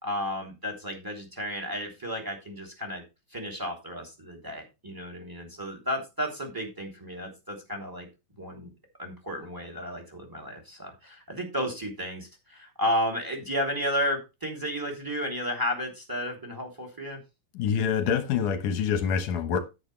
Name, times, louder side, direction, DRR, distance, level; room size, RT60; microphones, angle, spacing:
voice 1, 0.0-3.0 3.3-8.1 8.4-8.7 9.0-17.2, equal, 5° right, 2.6 m, -33 dB
voice 2, 17.5-19.6, left 7 dB, 65° left, 2.3 m, -26 dB
9.7 x 9.4 x 3.3 m
omnidirectional pair, 4.4 m